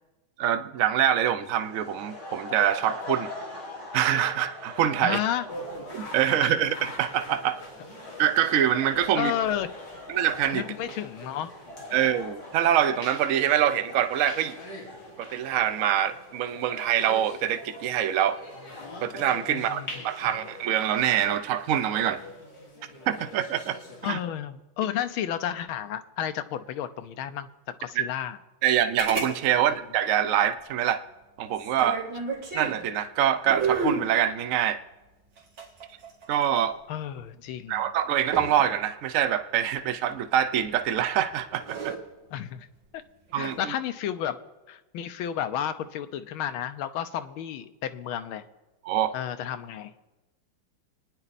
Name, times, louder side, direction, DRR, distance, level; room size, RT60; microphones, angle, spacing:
voice 1, 0.4-3.3 3.9-5.2 5.9-7.6 8.2-9.3 10.1-10.6 11.9-14.6 15.2-18.4 19.0-22.2 23.1-23.8 24.0-24.2 28.0-28.1 28.6-31.0 31.4-32.0 32.5-34.8 36.3-36.8 37.7-41.9 43.3-43.7 48.8-49.1, right 10 dB, 85° right, 11 dB, 0.7 m, -25 dB
sound 1, 1.3-20.7, left 2 dB, 15° left, 3.9 m, -43 dB
voice 2, 5.0-5.4 9.1-9.7 10.5-11.5 19.5-19.9 24.0-27.5 27.8-28.4 36.9-37.8 42.3-42.7 42.9-43.0 43.3-44.4 44.7-48.5 49.1-49.9, left 10 dB, 80° left, 10 dB, 1.6 m, -31 dB
sound 2, 5.5-24.1, left 1 dB, 60° left, 3.6 m, -44 dB
sound 3, 29.0-29.3 29.6-29.7 31.5-32.8 33.5-34.1 35.4-36.6 38.3-38.7 40.6-40.9 41.5-42.0 43.3-43.6, right 4 dB, 65° right, 2.8 m, -30 dB
26.5 x 10.0 x 4.1 m, 1.1 s
omnidirectional pair, 2.2 m